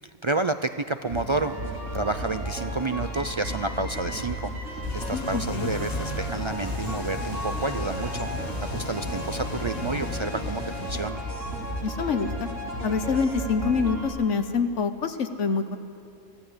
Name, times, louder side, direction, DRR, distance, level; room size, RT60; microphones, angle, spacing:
voice 1, 0.0-1.5 1.9-8.3 8.7-11.2, right 3 dB, 50° right, 10 dB, 0.3 m, -30 dB
sound 1, 1.1-14.1, equal, 85° right, 4.1 m, -33 dB
sound 2, 4.8-11.1, left 3 dB, 35° left, 1.2 m, -36 dB
voice 2, 5.1-5.7 11.8-12.5 12.8-15.8, left 5 dB, 75° left, 8 dB, 1.4 m, -26 dB
24.0 x 16.0 x 8.0 m, 2.7 s
omnidirectional pair, 1.2 m